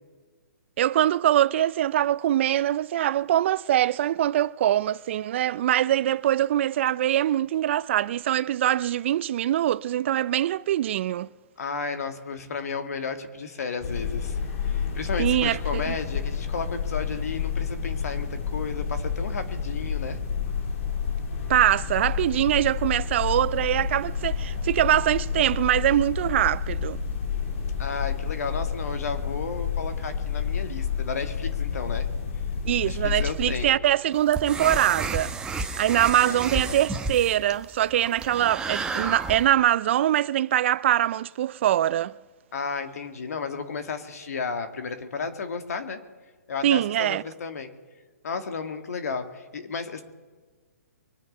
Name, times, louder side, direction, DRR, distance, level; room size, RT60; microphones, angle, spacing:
voice 1, 0.8-11.3 15.2-15.9 21.5-27.0 32.7-42.1 46.6-47.2, right 12 dB, 45° right, 0.4 m, -23 dB
voice 2, 11.6-14.4 14.6-20.2 27.8-32.1 32.8-33.8 36.1-36.8 42.5-46.0 46.5-47.7 48.2-50.0, left 5 dB, 70° left, 2.0 m, -33 dB
sound 1, 13.8-33.6, left 6 dB, 55° left, 2.7 m, -30 dB
sound 2, 34.1-39.5, right 3 dB, 10° right, 0.9 m, -31 dB
24.0 x 9.3 x 5.3 m
hypercardioid pair, 140°, 9 cm